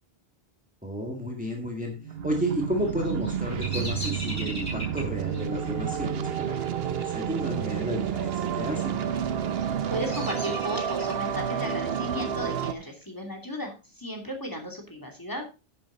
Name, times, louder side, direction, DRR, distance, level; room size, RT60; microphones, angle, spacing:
voice 1, 0.8-9.0, equal, 10° right, 1 dB, 1.9 m, -32 dB
sound 1, 2.0-12.7, right 8 dB, 75° right, 1.0 m, -30 dB
Bird vocalization bird call bird song, 2.8-7.9 8.1-8.7 9.3-11.3, left 1 dB, 55° left, 5.9 m, -40 dB
voice 2, 9.9-15.4, equal, 20° left, 3 dB, 2.9 m, -35 dB
10.5 x 9.1 x 4.0 m, 0.30 s
omnidirectional pair, 1.0 m